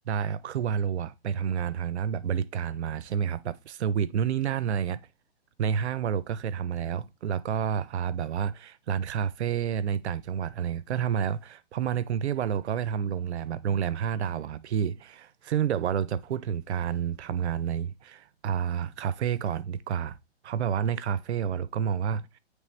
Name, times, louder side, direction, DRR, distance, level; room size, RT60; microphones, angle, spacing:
voice 1, 0.1-5.0 5.6-20.2 20.4-22.3, right 8 dB, 85° right, 0.5 m, -29 dB
9.0 x 3.2 x 3.2 m
hypercardioid pair, 170°, 33 cm